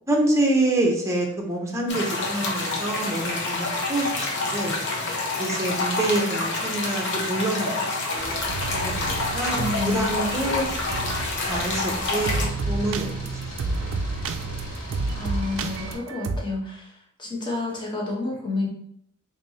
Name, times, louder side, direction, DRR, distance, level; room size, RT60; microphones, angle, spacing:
voice 1, 0.1-4.3 4.5-4.8 5.4-7.7 8.1-8.4 8.7-9.6 9.9-11.0 11.5-13.3 13.8-13.9, right 1 dB, 15° right, -1 dB, 0.7 m, -26 dB
sound 1, 1.9-12.4, left 2 dB, 55° left, 0.8 m, -28 dB
sound 2, 8.1-16.0, equal, 70° left, 1.3 m, -37 dB
sound 3, 8.5-11.4 11.7-11.9 12.3-16.4, right 3 dB, 60° right, 0.4 m, -31 dB
voice 2, 9.5-10.1 15.1-18.7, left 3 dB, 20° left, -3 dB, 1.0 m, -29 dB
3.2 x 2.7 x 4.1 m, 0.69 s
head